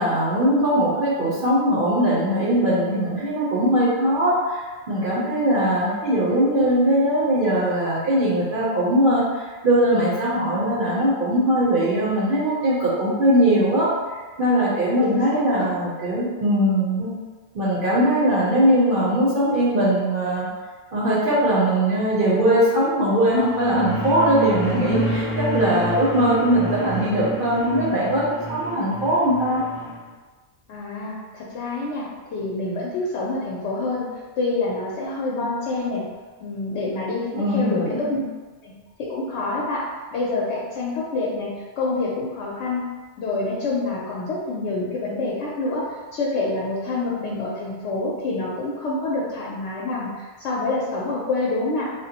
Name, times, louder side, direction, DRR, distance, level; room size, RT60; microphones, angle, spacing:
voice 1, 0.0-13.9 14.4-17.1 17.5-20.5 20.9-29.6 37.3-38.2, right 1 dB, 55° right, -7 dB, 0.8 m, -20 dB
voice 2, 15.0-15.7 30.7-34.1 34.4-36.0 36.4-38.2 38.6-38.7 39.0-39.9 40.1-42.9 43.2-51.9, left 3 dB, 85° left, -4 dB, 0.9 m, -27 dB
sound 1, 23.3-30.0, right 1 dB, 55° left, 0.6 m, -28 dB
3.6 x 2.0 x 2.8 m, 1.4 s
omnidirectional pair, 1.2 m